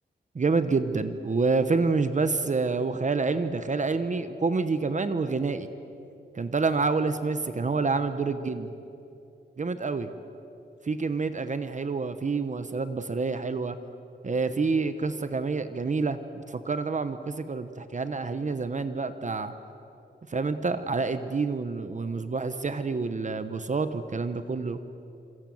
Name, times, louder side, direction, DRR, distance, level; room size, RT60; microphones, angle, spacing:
voice 1, 0.3-5.7 6.3-8.7 9.6-10.1 10.8-13.8 14.2-19.5 20.3-24.8, right 4 dB, 40° right, 10 dB, 1.0 m, -28 dB
27.0 x 27.0 x 7.8 m, 2.8 s
wide cardioid pair, 165°, 19 cm